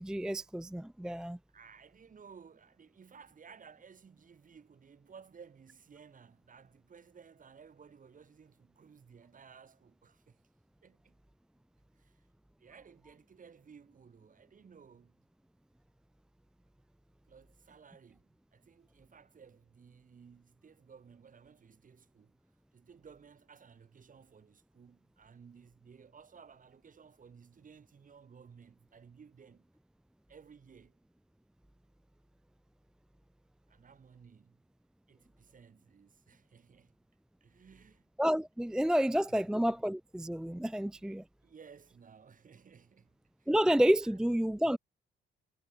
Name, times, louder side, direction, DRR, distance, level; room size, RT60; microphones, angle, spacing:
voice 1, 0.0-1.4 38.2-41.2 43.5-44.8, equal, 5° right, 0.5 m, -29 dB
voice 2, 1.5-10.4 10.8-11.2 11.9-12.3 12.6-15.2 17.3-22.4 22.7-29.6 30.3-31.0 33.7-34.6 35.1-37.0 37.4-38.1 39.0-39.5 41.0-41.1 41.4-43.5 44.0-44.4, right 6 dB, 40° right, 3.3 m, -57 dB
cardioid pair, 90°, 20 cm